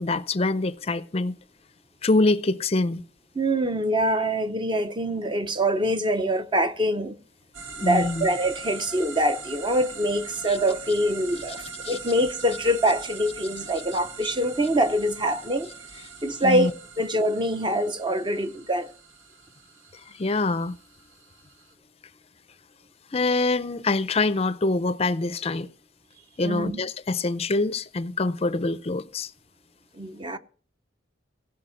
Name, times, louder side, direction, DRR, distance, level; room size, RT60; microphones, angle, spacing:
voice 1, 0.0-1.3 2.0-3.0 7.8-8.3 10.5-10.6 11.8-12.0 16.4-16.7 20.1-20.8 23.1-25.7 26.4-29.3, left 2 dB, 30° left, 0.5 m, -25 dB
voice 2, 3.4-7.1 7.8-18.9 26.4-26.8 29.9-30.4, right 1 dB, 25° right, 0.7 m, -25 dB
sound 1, 7.5-21.7, right 5 dB, 90° right, 1.4 m, -41 dB
17.0 x 5.7 x 7.7 m
head